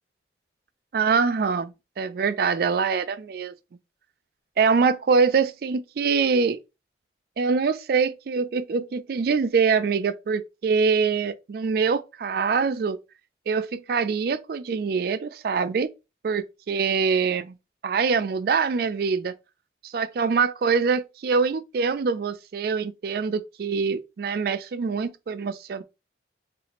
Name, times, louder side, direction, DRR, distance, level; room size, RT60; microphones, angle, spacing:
voice 1, 0.9-3.5 4.6-6.6 7.4-13.0 13.5-15.9 16.2-17.5 17.8-19.3 19.8-25.8, right 5 dB, 55° right, 0.3 m, -24 dB
4.0 x 2.4 x 2.9 m
head